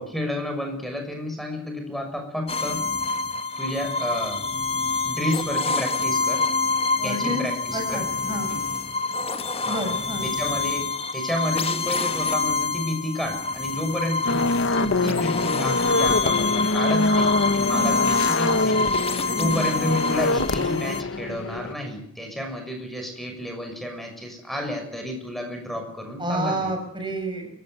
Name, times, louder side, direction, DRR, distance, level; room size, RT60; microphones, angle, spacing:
voice 1, 0.0-2.9 3.6-4.4 5.0-6.4 7.0-8.1 8.5-8.6 9.7-9.8 10.2-19.1 19.4-26.7, left 1 dB, ahead, 4 dB, 6.4 m, -31 dB
sound 1, 2.5-21.0, left 4 dB, 30° left, 1.2 m, -26 dB
voice 2, 7.0-7.4 7.7-8.5 9.6-10.3 17.7-18.2 19.3-19.7 26.2-27.5, right 1 dB, 25° right, 5 dB, 6.1 m, -30 dB
sound 2, 14.3-21.7, left 2 dB, 65° left, 1.0 m, -24 dB
30.0 x 16.5 x 9.3 m, 0.67 s
head